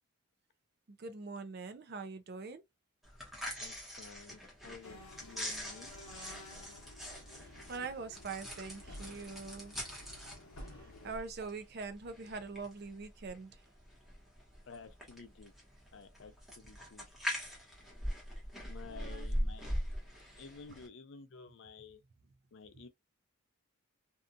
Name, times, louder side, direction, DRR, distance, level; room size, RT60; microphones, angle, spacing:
voice 1, 0.9-2.6 7.7-9.7 10.8-13.6 18.9-19.3 22.7-22.8, right 4 dB, 50° right, 0.4 m, -43 dB
sound 1, 3.0-20.9, equal, ahead, 0.9 m, -42 dB
voice 2, 3.6-6.1 9.0-9.6 10.8-11.2 14.7-15.5 15.9-17.1 18.6-19.7 20.4-22.0 22.5-22.9, left 4 dB, 60° left, 0.5 m, -53 dB
sound 2, 4.8-11.2, left 1 dB, 90° left, 0.7 m, -52 dB
2.7 x 2.3 x 2.4 m
head